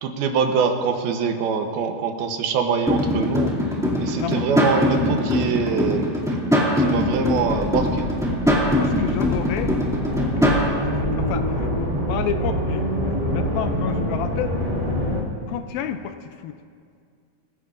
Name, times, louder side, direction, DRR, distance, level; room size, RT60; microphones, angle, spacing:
voice 1, 0.0-3.5 4.0-6.4 6.8-8.0, right 5 dB, 80° right, 5 dB, 2.9 m, -24 dB
sound 1, 2.9-10.7, left 1 dB, ahead, 1.5 m, -22 dB
voice 2, 4.2-4.6 8.3-9.7 10.3-14.6 15.5-16.6, left 9 dB, 80° left, 9 dB, 2.2 m, -31 dB
sound 2, 7.0-15.2, equal, 20° right, 1.6 m, -26 dB
26.0 x 15.0 x 2.6 m, 2.2 s
omnidirectional pair, 4.4 m